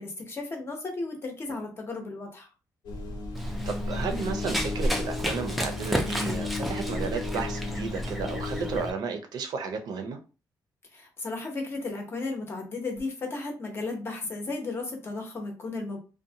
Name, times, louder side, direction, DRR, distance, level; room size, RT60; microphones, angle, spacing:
voice 1, 0.0-2.5 10.9-16.0, left 3 dB, 35° left, 3 dB, 0.7 m, -34 dB
sound 1, 2.8-8.8, left 2 dB, 85° left, 0.9 m, -33 dB
Run, 3.3-8.9, equal, ahead, 0.3 m, -33 dB
voice 2, 3.7-10.2, right 5 dB, 70° right, 5 dB, 0.4 m, -33 dB
2.6 x 2.1 x 2.7 m, 0.33 s
wide cardioid pair, 170°, 7 cm